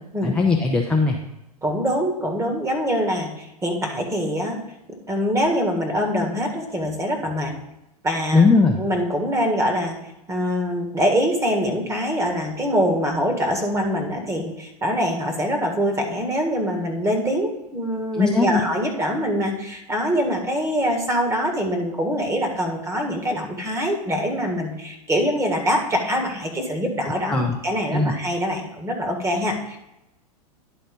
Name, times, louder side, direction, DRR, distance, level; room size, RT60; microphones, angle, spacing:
voice 1, 0.2-1.2 8.3-8.8 18.1-18.6 27.0-27.6 27.9-28.1, left 4 dB, 5° left, 0 dB, 0.7 m, -19 dB
voice 2, 1.6-4.6 5.1-7.5 8.0-8.4 8.7-29.8, equal, 15° right, 2 dB, 1.8 m, -24 dB
10.5 x 4.1 x 5.2 m, 0.90 s
hypercardioid pair, 105°, 20 cm